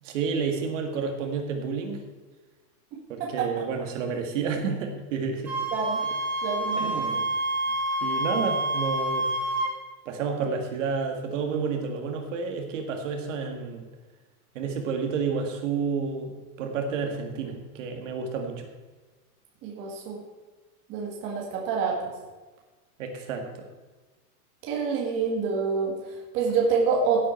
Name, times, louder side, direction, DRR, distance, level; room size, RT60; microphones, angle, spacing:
voice 1, 0.0-2.0 3.1-5.5 6.8-7.2 8.0-9.3 10.1-13.8 14.5-16.3 16.6-18.7 23.0-23.7, right 5 dB, 55° right, 3 dB, 2.1 m, -30 dB
Wind instrument woodwind instrument, 5.4-9.7, right 1 dB, 5° right, 0.5 m, -28 dB
voice 2, 5.7-6.0 6.4-7.2 19.6-20.2 20.9-22.1 24.6-27.3, right 5 dB, 25° right, -2 dB, 1.8 m, -27 dB
15.5 x 8.3 x 4.5 m, 1.3 s
supercardioid pair, 175°, 46 cm